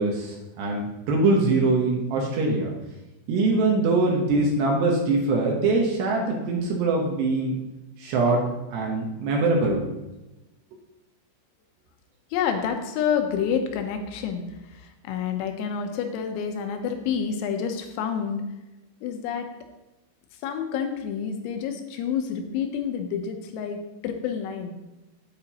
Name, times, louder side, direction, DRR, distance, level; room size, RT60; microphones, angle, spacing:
voice 1, 0.0-2.7 3.3-7.6 8.0-8.4 8.7-9.9, right 3 dB, 70° right, -1 dB, 2.9 m, -23 dB
voice 2, 12.3-14.4 14.7-18.4 19.0-19.5 20.4-24.7, left 7 dB, 90° left, 5 dB, 3.7 m, -28 dB
11.5 x 8.9 x 3.0 m, 1.0 s
omnidirectional pair, 5.9 m